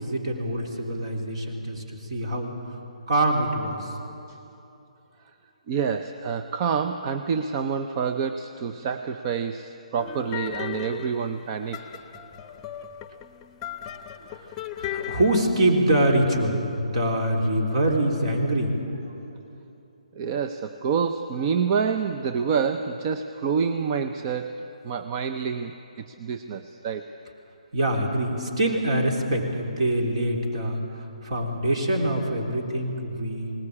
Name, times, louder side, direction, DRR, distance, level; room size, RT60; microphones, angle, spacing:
voice 1, 0.0-1.8 2.1-2.5 3.1-3.9 12.4-12.5 13.9-14.5 14.8-18.8 27.7-30.8 31.2-33.5, right 1 dB, 55° right, 1 dB, 3.6 m, -24 dB
voice 2, 5.7-11.8 20.2-24.5 24.8-25.7 26.0-27.1, right 6 dB, 35° right, 7 dB, 0.7 m, -27 dB
sound 1, 10.0-15.4, left 10 dB, 15° left, 0.9 m, -37 dB
19.5 x 19.0 x 8.6 m, 2.9 s
figure-of-eight pair, 145°, 4 cm